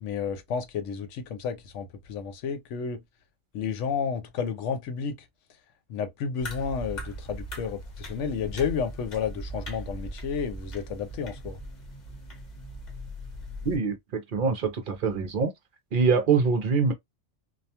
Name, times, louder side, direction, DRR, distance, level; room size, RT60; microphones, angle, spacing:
voice 1, 0.0-3.0 3.5-5.2 5.9-11.6, left 6 dB, 80° left, 0.9 m, -31 dB
sound 1, 6.4-13.8, right 1 dB, 40° left, 1.0 m, -39 dB
voice 2, 13.6-15.5 15.9-16.9, right 5 dB, 55° right, 0.6 m, -24 dB
2.3 x 2.2 x 2.7 m
omnidirectional pair, 1.2 m